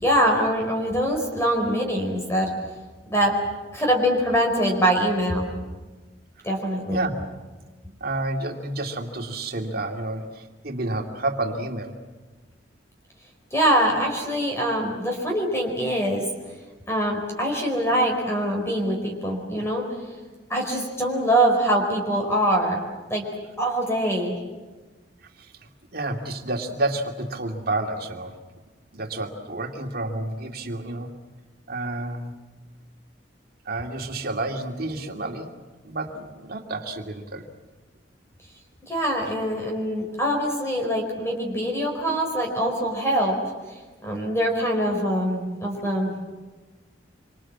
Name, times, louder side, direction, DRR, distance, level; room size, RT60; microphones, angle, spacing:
voice 1, 0.0-2.5 3.1-3.4 3.7-5.5 6.4-7.1 13.5-16.2 16.9-19.8 20.5-22.8 23.1-23.2 23.6-24.4 38.8-43.4 44.0-46.3, equal, 15° left, 1 dB, 4.7 m, -23 dB
voice 2, 8.0-12.0 19.6-19.7 25.4-28.4 28.9-31.1 31.7-32.3 33.7-35.5 35.8-37.5, right 2 dB, 55° right, 3 dB, 2.4 m, -30 dB
26.0 x 26.0 x 7.5 m, 1.3 s
head